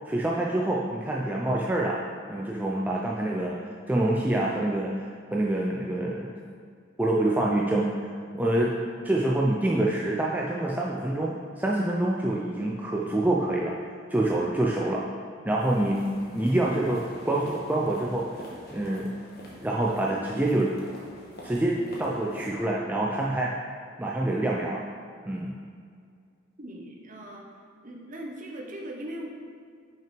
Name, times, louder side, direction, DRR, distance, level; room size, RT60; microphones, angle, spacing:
voice 1, 0.1-2.0 2.3-3.6 3.9-6.3 7.0-8.1 8.3-8.8 9.0-13.8 14.1-15.0 15.4-16.0 16.3-18.3 18.7-19.1 19.6-20.7 21.4-23.5 24.0-24.8 25.3-25.5, right 1 dB, 10° right, -3 dB, 0.4 m, -26 dB
sound 1, 15.6-22.5, equal, 50° left, 1.4 m, -44 dB
voice 2, 26.6-27.5 27.8-29.3, right 1 dB, 40° right, 1 dB, 1.0 m, -39 dB
5.9 x 5.9 x 5.1 m, 2.2 s
head